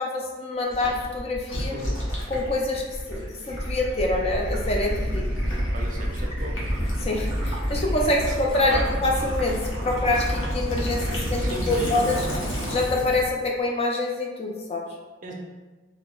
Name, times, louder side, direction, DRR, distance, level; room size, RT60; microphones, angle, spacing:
voice 1, 0.0-1.8 2.3-5.3 7.0-12.3 12.7-14.8, left 2 dB, 30° left, 0 dB, 0.4 m, -26 dB
Gurgling / Liquid, 0.7-13.3, equal, 70° left, 0.9 m, -29 dB
voice 2, 5.7-6.6 8.3-8.4 8.7-8.9 11.4-12.0 15.2-15.3, right 2 dB, 40° right, 0 dB, 0.4 m, -35 dB
2.7 x 2.0 x 3.7 m, 1.3 s
head